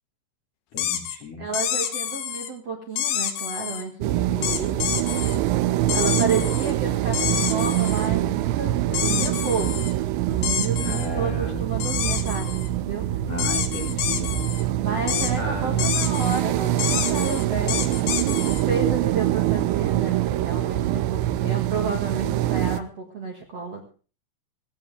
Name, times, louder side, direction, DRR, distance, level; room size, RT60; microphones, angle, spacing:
voice 1, 0.7-1.5 10.8-11.6 13.3-14.3 15.4-16.0, left 2 dB, 40° left, 1 dB, 2.6 m, -34 dB
sound 1, 0.8-1.2 1.5-2.5 3.0-3.8 4.4-5.4 5.9-6.7 7.1-8.1 8.9-9.9 10.4-11.1 11.8-12.7 13.4-14.6 15.1-15.3 15.8-16.4 16.8-18.6, left 10 dB, 75° left, 3.7 m, -28 dB
voice 2, 1.4-4.8 5.9-9.9 10.3-13.2 14.7-18.3 18.6-23.9, right 4 dB, 45° right, 0 dB, 2.2 m, -31 dB
sound 2, 4.0-22.8, right 14 dB, 80° right, 3.0 m, -24 dB
17.0 x 17.0 x 3.4 m, 0.37 s
omnidirectional pair, 5.4 m